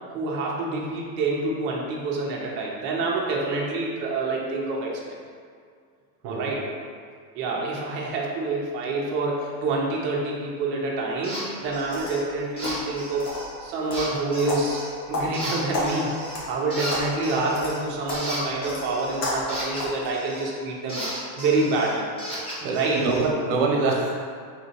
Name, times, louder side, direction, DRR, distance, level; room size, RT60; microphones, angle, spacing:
voice 1, 0.1-5.1 6.2-6.6 7.3-13.3 13.6-16.1 16.5-21.1 21.3-22.0 22.7-23.0, right 3 dB, 25° right, -3 dB, 0.3 m, -27 dB
sound 1, 11.2-11.4 11.7-12.2 12.6-13.5 13.9-14.9 15.3-16.4 16.7-20.5 20.9-23.3, equal, 10° left, 0.6 m, -35 dB
sound 2, 11.6-20.1, left 1 dB, 85° left, 1.4 m, -33 dB
voice 2, 22.6-24.1, right 3 dB, 45° right, 0 dB, 0.8 m, -25 dB
3.7 x 2.8 x 4.1 m, 2.1 s
supercardioid pair, 150°, 49 cm